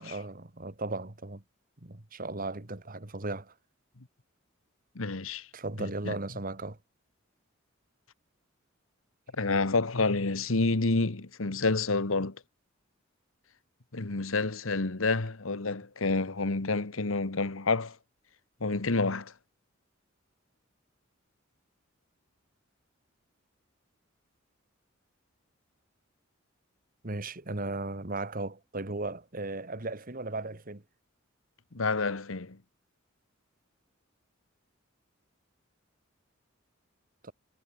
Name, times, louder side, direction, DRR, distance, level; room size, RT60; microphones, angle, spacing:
voice 1, 0.0-1.4 1.8-3.5 5.5-6.8 27.0-30.8 37.2-37.3, right 2 dB, 45° right, 1.9 m, -36 dB
voice 2, 4.9-5.5 5.8-6.1 9.4-12.4 13.9-18.0 18.6-19.3 31.7-32.6, left 3 dB, 90° left, 1.4 m, -29 dB
head